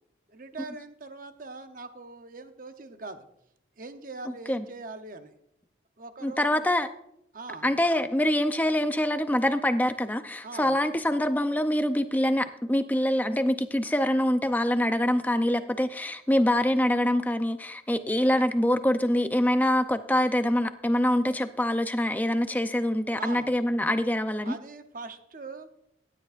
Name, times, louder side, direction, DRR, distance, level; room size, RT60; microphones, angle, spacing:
voice 1, 0.3-3.2 3.8-5.3 6.0-6.7 7.3-7.7 10.4-10.8 23.2-23.5 24.4-25.7, right 3 dB, 45° right, 8 dB, 0.8 m, -42 dB
voice 2, 6.2-6.9 7.6-24.6, left 1 dB, 10° left, 9 dB, 0.5 m, -25 dB
16.0 x 10.5 x 2.5 m, 0.76 s
head